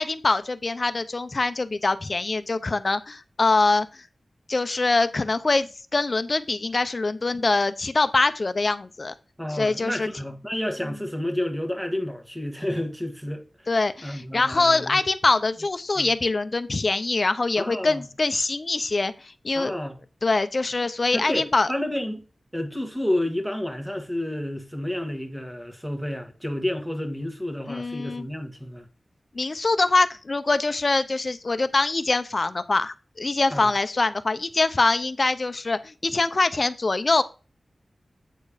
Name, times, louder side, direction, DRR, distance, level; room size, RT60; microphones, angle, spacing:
voice 1, 0.0-4.0 4.5-9.1 9.5-10.1 13.7-19.7 20.2-21.7 27.7-28.3 29.3-37.2, left 3 dB, 45° left, 0.7 m, -24 dB
voice 2, 9.4-13.8 14.0-15.0 15.9-16.1 17.6-18.1 19.5-20.0 21.1-22.2 22.5-28.9 33.5-33.7, left 1 dB, 5° right, 1.5 m, -30 dB
8.4 x 4.4 x 5.0 m
wide cardioid pair, 105°, 0 cm